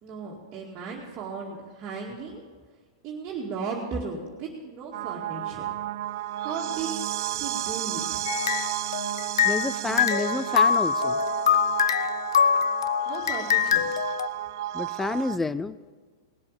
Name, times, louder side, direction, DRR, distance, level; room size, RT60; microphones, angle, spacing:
voice 1, 0.0-2.4 3.0-5.7 6.4-6.9 7.3-8.2 13.1-13.9, right 5 dB, 35° right, -3 dB, 2.2 m, -36 dB
sound 1, 4.9-15.4, right 14 dB, 60° right, 0.4 m, -32 dB
sound 2, 8.3-9.7 10.0-14.3, left 7 dB, 85° left, 0.5 m, -24 dB
voice 2, 9.4-11.2 14.7-15.9, left 3 dB, 10° left, 17 dB, 0.4 m, -29 dB
18.5 x 7.6 x 7.5 m, 1.5 s
hypercardioid pair, 130°, 2 cm